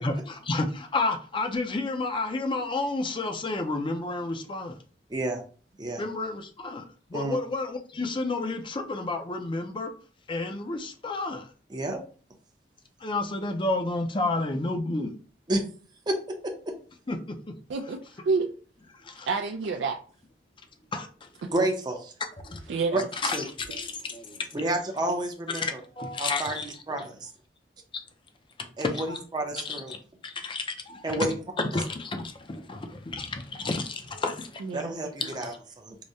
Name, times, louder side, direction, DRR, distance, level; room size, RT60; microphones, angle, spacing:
voice 1, 0.0-4.8 6.0-9.9 10.3-11.5 13.0-15.1 17.1-17.5 19.0-19.3 20.9-21.5 22.4-22.7 23.1-24.5 25.5-26.7 27.9-28.0 28.6-29.2 29.6-30.0 30.2-31.3 31.6-34.6 35.2-35.6, left 3 dB, 30° left, 0.5 m, -31 dB
voice 2, 5.1-5.4 5.8-6.0 7.1-7.4 11.7-12.0 15.5-15.7 16.1-16.7 21.5-22.1 22.9-23.0 23.3-23.4 24.5-25.8 26.2-27.3 28.8-29.9 31.0-31.3 34.7-36.0, right 1 dB, 25° right, 0.6 m, -30 dB
voice 3, 17.7-18.5 19.3-20.0 22.7-23.1 34.6-34.9, right 4 dB, 90° right, 0.4 m, -28 dB
4.8 x 2.1 x 2.7 m
head